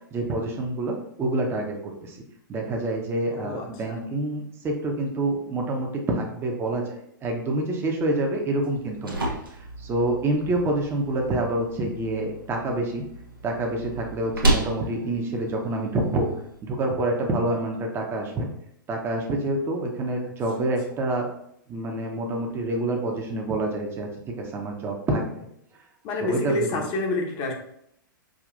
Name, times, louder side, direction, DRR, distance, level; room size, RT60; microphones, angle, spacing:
voice 1, 0.1-2.2 2.5-9.2 9.6-13.0 13.4-16.3 16.6-18.5 18.9-21.3 21.7-25.5 26.2-26.8, right 2 dB, 20° right, 1 dB, 0.7 m, -27 dB
voice 2, 3.3-4.0 20.2-20.3 26.0-27.5, left 2 dB, 35° left, 2 dB, 0.9 m, -28 dB
sound 1, 8.6-16.6, right 2 dB, 90° right, 0.9 m, -32 dB
4.9 x 2.5 x 2.5 m, 0.72 s
figure-of-eight pair, 105°, 11 cm